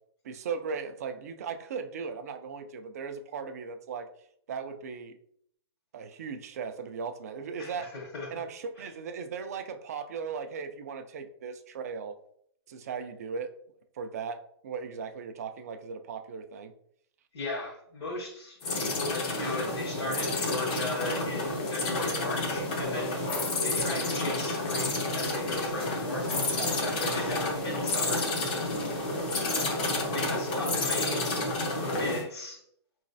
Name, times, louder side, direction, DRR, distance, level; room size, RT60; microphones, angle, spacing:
voice 1, 0.2-4.1 4.5-5.1 5.9-7.9 8.3-12.2 12.7-13.5 14.0-16.7 26.6-27.3 29.6-29.9, right 6 dB, 35° right, 7 dB, 0.4 m, -37 dB
voice 2, 7.6-8.3 8.8-8.9 17.3-23.1 23.6-26.4 26.8-28.3 30.1-31.3 32.0-32.6, left 2 dB, 75° left, -5 dB, 1.6 m, -37 dB
sound 1, 18.6-32.2, left 2 dB, 20° left, 0.5 m, -30 dB
4.7 x 3.1 x 2.6 m, 0.68 s
hypercardioid pair, 175°, 14 cm